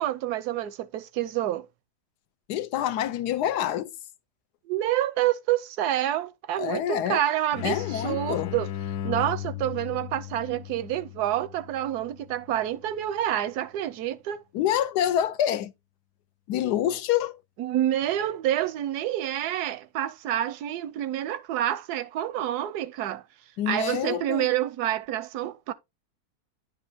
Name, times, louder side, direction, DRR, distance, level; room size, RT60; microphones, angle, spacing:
voice 1, 0.0-1.7 4.6-8.7 9.0-14.4 17.6-23.2 23.7-25.7, right 12 dB, 85° right, 1.1 m, -28 dB
voice 2, 2.5-4.0 6.6-7.2 7.6-8.5 14.5-15.7 16.5-17.4 23.6-24.5, left 11 dB, 85° left, 1.2 m, -27 dB
sound 1, 7.5-13.0, left 13 dB, 65° left, 0.9 m, -37 dB
10.0 x 5.3 x 2.7 m
omnidirectional pair, 1.7 m